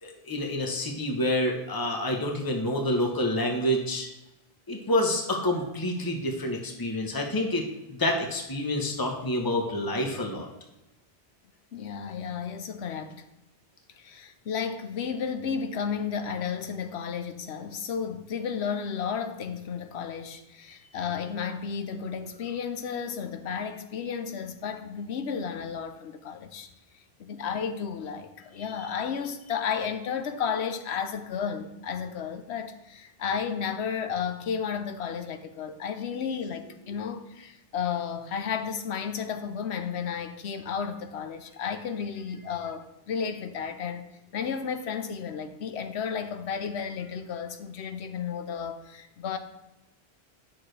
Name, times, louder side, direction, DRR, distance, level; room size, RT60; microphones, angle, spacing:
voice 1, 0.0-4.1 4.7-10.5, left 1 dB, 20° left, 1 dB, 1.1 m, -28 dB
voice 2, 11.7-13.2 14.0-26.7 27.2-44.1 44.3-49.4, left 7 dB, 85° left, 9 dB, 1.0 m, -33 dB
9.9 x 6.3 x 3.3 m, 0.95 s
omnidirectional pair, 1.1 m